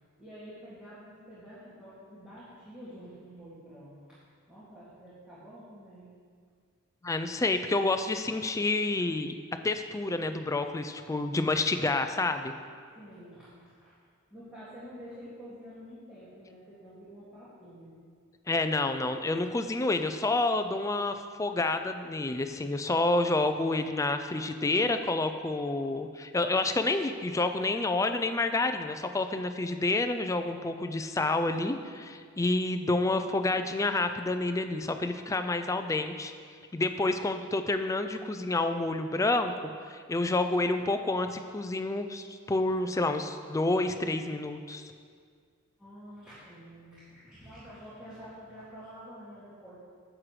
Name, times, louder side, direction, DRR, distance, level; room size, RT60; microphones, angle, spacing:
voice 1, 0.2-4.0 4.5-6.1 13.0-13.5 13.8-13.9 14.3-18.0 33.5-33.6 45.8-49.8, equal, 5° right, -13 dB, 2.1 m, -48 dB
voice 2, 7.0-9.3 9.6-12.5 18.5-36.3 36.7-39.5 39.9-44.9, left 2 dB, 15° left, 8 dB, 0.3 m, -29 dB
11.0 x 7.5 x 3.2 m, 2.1 s
head